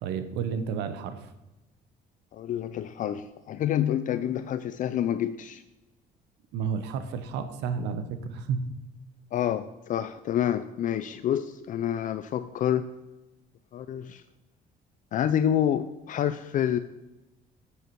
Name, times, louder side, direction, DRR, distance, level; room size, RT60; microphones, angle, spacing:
voice 1, 0.0-1.3 6.5-8.6, right 6 dB, 85° right, 10 dB, 0.9 m, -31 dB
voice 2, 2.3-5.6 9.3-12.9 13.7-14.2 15.1-16.8, left 10 dB, 50° left, 12 dB, 0.4 m, -28 dB
8.2 x 6.5 x 4.6 m, 0.99 s
cardioid pair, 110°, 17 cm